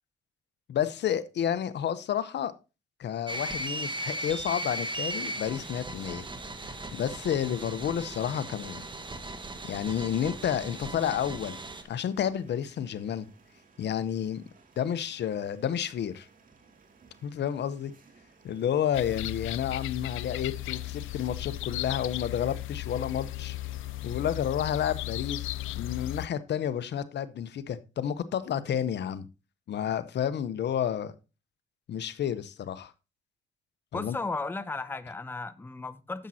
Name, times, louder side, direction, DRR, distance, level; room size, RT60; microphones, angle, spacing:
voice 1, 0.7-2.5 3.0-6.2 6.7-8.8 9.6-11.6 11.9-13.3 13.8-14.4 14.8-16.3 17.2-17.9 18.4-23.6 24.0-25.5 25.8-29.3 29.7-31.1 31.9-32.9 33.9-34.2, left 9 dB, 60° left, 0.8 m, -30 dB
sound 1, 3.3-11.8, right 1 dB, 25° right, 1.5 m, -37 dB
sound 2, 7.6-24.4, right 4 dB, 45° right, 2.4 m, -59 dB
sound 3, 18.9-26.3, left 16 dB, 80° left, 0.4 m, -36 dB
voice 2, 33.9-36.3, left 3 dB, 10° left, 0.6 m, -35 dB
10.0 x 7.5 x 2.8 m
cardioid pair, 90°, 20 cm